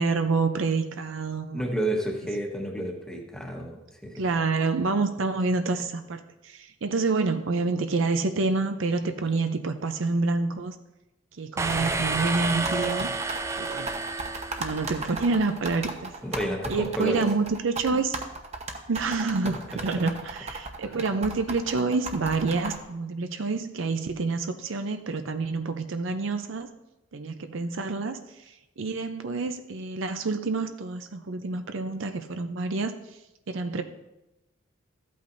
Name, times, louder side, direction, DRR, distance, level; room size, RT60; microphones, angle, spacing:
voice 1, 0.0-1.7 4.1-10.8 11.4-13.1 13.6-13.9 14.6-16.1 16.7-18.1 18.9-26.7 27.1-33.0 33.5-33.8, right 3 dB, 65° right, 8 dB, 0.6 m, -28 dB
voice 2, 1.5-4.2 16.2-17.2 19.4-19.5 20.8-20.9, right 1 dB, 5° left, 1 dB, 1.2 m, -30 dB
sound 1, 11.6-15.3, right 3 dB, 15° right, 0.3 m, -30 dB
sound 2, 11.6-22.8, right 3 dB, 35° right, 0.9 m, -35 dB
14.0 x 8.5 x 2.6 m, 0.96 s
head